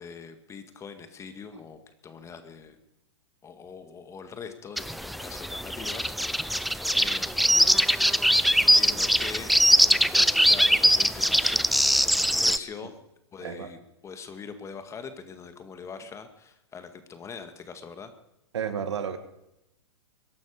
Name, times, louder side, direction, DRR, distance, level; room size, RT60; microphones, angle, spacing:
voice 1, 0.0-2.8 3.4-7.8 8.5-11.7 12.0-12.9 13.3-18.1, left 6 dB, 20° left, 9 dB, 1.9 m, -43 dB
sound 1, 4.8-12.6, equal, ahead, 0.5 m, -22 dB
voice 2, 18.5-19.2, right 7 dB, 75° right, 10 dB, 2.0 m, -31 dB
22.0 x 11.5 x 5.0 m, 0.86 s
hypercardioid pair, 115°, 15 cm